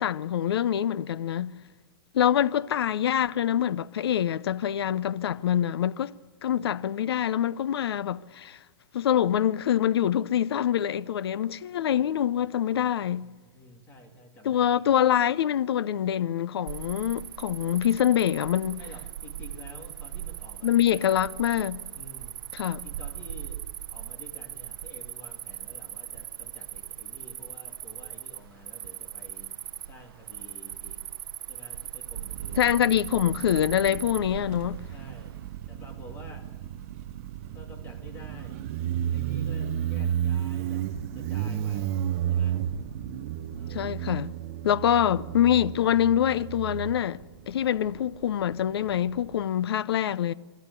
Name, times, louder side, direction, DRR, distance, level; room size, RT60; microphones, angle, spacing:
voice 1, 0.0-1.5 2.1-6.1 6.4-8.6 8.9-13.3 14.4-18.8 20.6-21.8 22.5-22.8 32.5-34.8 43.7-44.3 44.6-47.2 47.5-50.3, left 10 dB, 70° left, 0.7 m, -25 dB
voice 2, 13.2-14.7 18.8-21.0 21.9-22.4 22.7-23.6 23.9-29.6 29.8-31.0 31.5-32.7 34.2-35.4 35.7-36.5 37.5-38.6 39.1-40.8 41.1-42.0 42.3-42.6 43.6-43.9 44.7-44.8, left 1 dB, 15° left, 2.2 m, -49 dB
Cricket, 16.7-35.6, right 11 dB, 60° right, 0.9 m, -40 dB
Motorcycle, 32.2-49.4, right 10 dB, 30° right, 0.9 m, -33 dB
26.0 x 12.5 x 8.2 m
hypercardioid pair, 170°, 14 cm